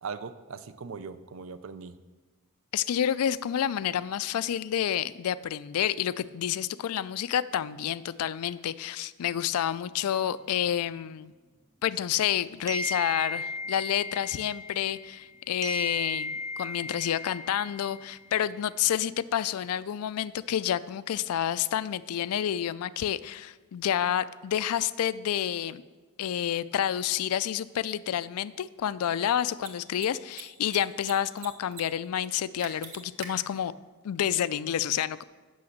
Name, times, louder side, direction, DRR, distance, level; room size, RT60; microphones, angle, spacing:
voice 1, 0.0-2.0 34.5-34.9, right 5 dB, 60° right, 13 dB, 0.5 m, -40 dB
voice 2, 2.7-11.3 11.8-25.8 26.2-33.7 34.0-35.2, left 10 dB, 75° left, 17 dB, 0.3 m, -29 dB
sound 1, 12.7-15.3 15.6-18.2, left 2 dB, 15° right, 0.5 m, -35 dB
Mechanisms, 27.1-27.2 29.5-29.7 30.0-30.1 30.3-31.1 31.4-31.8 32.1-32.2 32.6-33.3, right 7 dB, 80° right, 1.3 m, -41 dB
8.5 x 6.3 x 6.5 m, 1.3 s
head